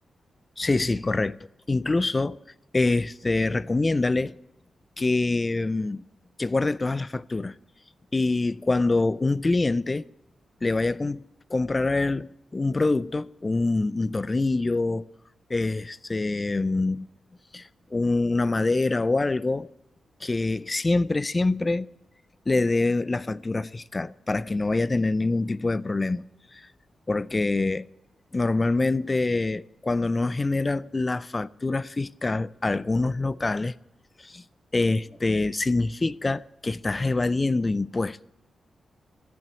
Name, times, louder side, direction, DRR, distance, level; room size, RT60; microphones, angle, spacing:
voice 1, 0.6-1.4 1.7-2.4 2.7-4.4 5.0-6.0 6.4-7.6 8.1-10.0 10.6-11.2 11.5-15.1 15.5-17.1 17.5-19.7 20.2-21.9 22.5-26.2 26.5-26.7 27.1-27.9 28.3-33.7 34.2-34.4 34.7-38.2, left 3 dB, 25° left, 0.4 m, -25 dB
13.0 x 7.7 x 8.2 m
wide cardioid pair, 130°, 0 cm